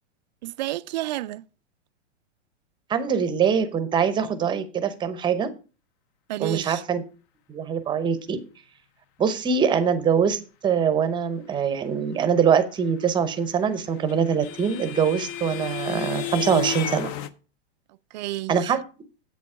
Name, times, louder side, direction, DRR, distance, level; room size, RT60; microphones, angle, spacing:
voice 1, 0.4-1.4 6.3-6.8 18.1-18.7, right 16 dB, 40° right, 0.4 m, -31 dB
voice 2, 2.9-5.5 6.4-7.0 7.5-8.4 9.2-17.1 18.5-18.8, right 7 dB, 15° right, 0.7 m, -23 dB
sound 1, 13.4-17.3, left 9 dB, 25° left, 0.5 m, -32 dB
8.3 x 7.0 x 4.8 m
hypercardioid pair, 140°, 35 cm